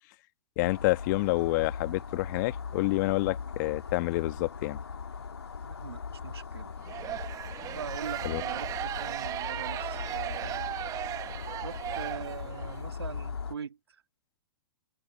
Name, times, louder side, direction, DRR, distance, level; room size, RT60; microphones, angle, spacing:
sound 1, 0.6-13.6, left 6 dB, 85° left, 2.6 m, -39 dB
voice 1, 0.6-4.8 8.2-8.4, left 22 dB, 45° left, 1.6 m, -28 dB
voice 2, 5.6-6.7 7.7-10.7 11.6-13.8, right 6 dB, 85° right, 2.1 m, -42 dB
sound 2, 6.8-12.8, right 12 dB, 25° right, 1.5 m, -36 dB
hypercardioid pair, 115°, 13 cm